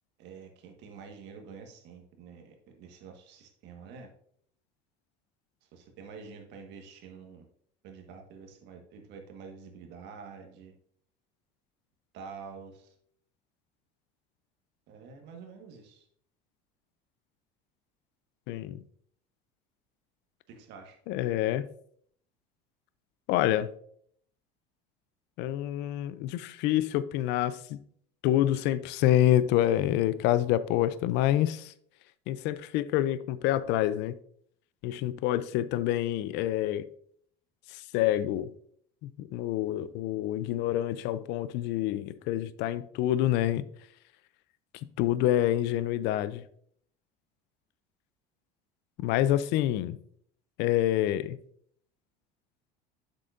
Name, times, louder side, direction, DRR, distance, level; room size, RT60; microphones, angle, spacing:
voice 1, 0.2-4.1 5.7-7.4 7.8-10.7 12.1-12.9 14.9-16.1 20.5-21.0, right 5 dB, 65° right, 1.5 m, -47 dB
voice 2, 18.5-18.8 21.1-21.6 23.3-23.7 25.4-27.8 28.2-31.7 32.3-34.1 34.8-36.9 37.9-38.5 39.0-43.6 45.0-46.4 49.0-50.0 50.6-51.4, left 13 dB, 65° left, 0.5 m, -27 dB
7.7 x 6.3 x 2.6 m
supercardioid pair, 105°, 20 cm